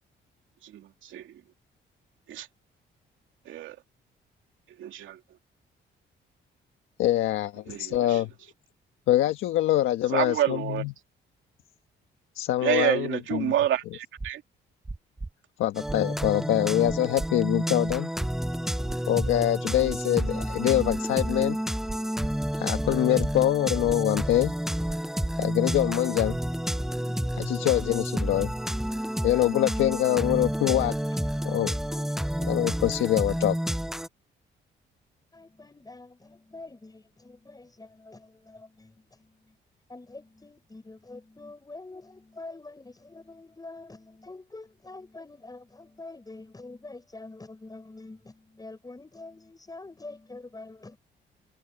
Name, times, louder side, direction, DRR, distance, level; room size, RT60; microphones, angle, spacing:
voice 1, 0.6-1.3 2.3-2.5 3.5-3.8 4.8-5.2 7.7-8.2 10.1-10.8 12.6-14.4, right 12 dB, 80° right, 2.7 m, -28 dB
voice 2, 7.0-8.3 9.1-10.9 12.3-13.5 15.6-18.1 19.1-21.6 22.6-24.5 25.4-26.4 27.5-28.5 29.2-30.9 31.4-31.7 32.5-33.6, left 13 dB, 90° left, 1.4 m, -24 dB
sound 1, 14.2-14.3 14.8-15.3 15.8-16.3 16.8-17.3 17.8-18.3 18.8-19.3 19.8-20.3 20.8-21.3 21.8-22.3 22.8-23.3 23.8-24.3 24.8-25.3, right 2 dB, 20° right, 1.5 m, -36 dB
sound 2, 15.7-34.1, equal, ahead, 0.5 m, -30 dB
voice 3, 35.3-39.6 39.9-51.0, left 2 dB, 20° left, 6.3 m, -46 dB
cardioid pair, 90°, 20 cm